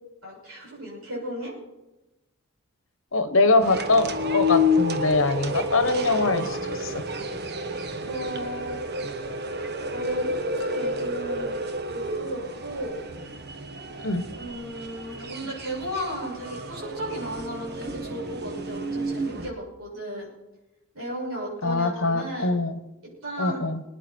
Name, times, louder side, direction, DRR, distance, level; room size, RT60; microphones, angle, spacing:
voice 1, 0.2-1.5 8.0-8.8 9.9-11.6 11.9-13.0 14.4-20.3 20.9-22.5 23.2-23.6, equal, 80° right, 6.7 m, -35 dB
voice 2, 3.1-7.0 14.0-14.3 21.6-22.8 23.4-23.8, left 3 dB, 65° left, 1.2 m, -23 dB
sound 1, 3.6-19.5, left 2 dB, 50° right, 1.2 m, -30 dB
22.5 x 9.9 x 4.5 m
head